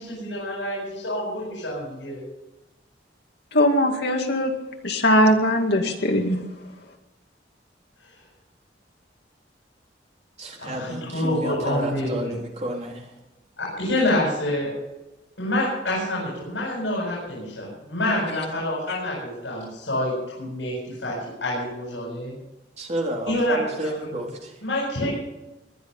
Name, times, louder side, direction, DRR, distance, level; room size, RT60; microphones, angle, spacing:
voice 1, 0.0-2.2 8.0-8.1 10.6-12.3 13.6-14.7 15.4-21.2 21.4-22.4 23.3-23.9 24.6-25.1, left 1 dB, 80° left, -6 dB, 7.6 m, -27 dB
voice 2, 3.5-4.5 4.8-6.4, equal, 65° left, 3 dB, 2.4 m, -20 dB
voice 3, 10.4-13.0 22.8-24.5, right 1 dB, 40° right, 0 dB, 3.6 m, -30 dB
21.5 x 11.0 x 5.6 m, 1.0 s
head